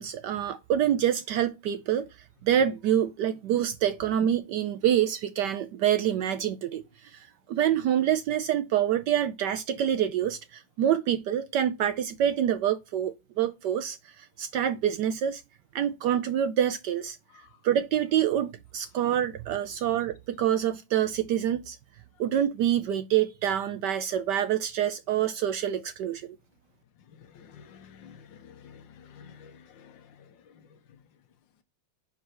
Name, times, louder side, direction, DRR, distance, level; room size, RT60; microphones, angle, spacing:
voice 1, 0.0-2.1 2.4-15.4 15.7-17.2 17.6-21.8 22.2-26.4, right 10 dB, 75° right, 1.0 m, -26 dB
voice 2, 27.1-31.0, left 7 dB, 70° left, 1.5 m, -52 dB
5.4 x 4.7 x 6.2 m
omnidirectional pair, 2.2 m